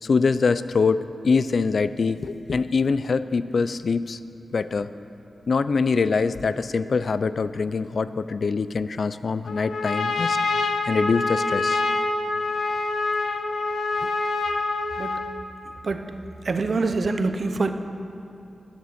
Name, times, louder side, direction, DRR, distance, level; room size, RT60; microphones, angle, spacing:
voice 1, 0.0-4.2 4.5-4.9 5.5-10.4 10.9-11.8 14.0-14.1, left 4 dB, 55° left, 14 dB, 0.3 m, -24 dB
Trumpet, 9.5-15.4, left 3 dB, 75° left, 0.9 m, -26 dB
voice 2, 15.0-15.3 15.8-16.2 16.4-17.7, right 3 dB, 45° right, 8 dB, 0.7 m, -25 dB
11.0 x 9.3 x 7.1 m, 2.7 s
wide cardioid pair, 150°, 0 cm